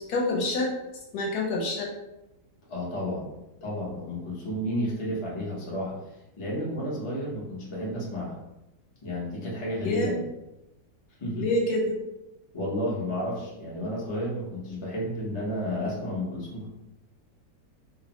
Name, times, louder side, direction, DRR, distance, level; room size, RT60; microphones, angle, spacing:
voice 1, 0.1-0.7 1.1-1.9 9.8-10.2 11.3-11.9, left 1 dB, 70° left, -1 dB, 1.1 m, -26 dB
voice 2, 2.7-3.3 3.6-5.9 6.4-8.4 9.0-10.1 11.2-11.4 12.5-16.7, equal, 45° left, -6 dB, 0.4 m, -32 dB
2.9 x 2.0 x 2.8 m, 0.93 s
omnidirectional pair, 1.9 m